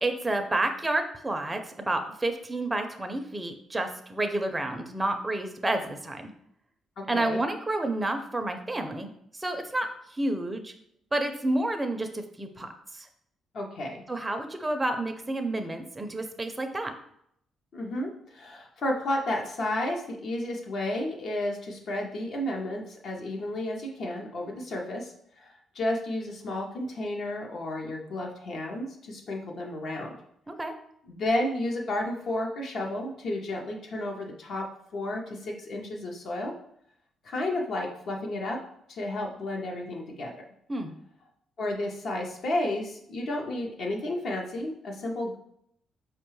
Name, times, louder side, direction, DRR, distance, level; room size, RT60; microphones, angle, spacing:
voice 1, 0.0-6.3 7.1-10.7 11.1-13.1 14.1-16.9 30.5-30.7 40.7-40.9, right 1 dB, 15° right, 6 dB, 0.4 m, -30 dB
voice 2, 7.0-7.4 13.5-14.0 17.7-30.1 31.0-34.7 34.9-36.5 37.2-38.6 38.9-40.3 41.6-45.4, left 1 dB, 65° left, 0 dB, 0.6 m, -32 dB
4.7 x 2.2 x 3.1 m, 0.71 s
cardioid pair, 90°, 0 cm